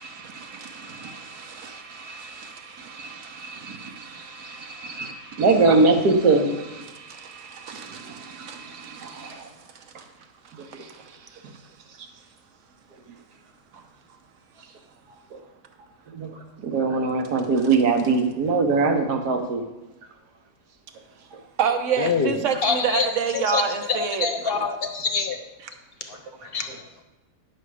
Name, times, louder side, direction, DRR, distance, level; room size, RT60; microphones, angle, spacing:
voice 1, 0.0-6.8 7.3-9.4 16.1-16.3 16.6-19.6, right 3 dB, 75° right, 5 dB, 1.6 m, -24 dB
voice 2, 1.1-1.7 2.4-2.5 7.1-8.6 9.0-9.1 9.7-9.8 10.6-11.4 11.9-12.0 21.6-24.3, right 6 dB, 55° right, 6 dB, 1.2 m, -28 dB
voice 3, 22.0-22.3 22.6-23.6 23.9-25.4 26.0-26.8, left 5 dB, 45° left, 5 dB, 0.9 m, -26 dB
10.5 x 6.9 x 4.9 m, 1.1 s
omnidirectional pair, 1.7 m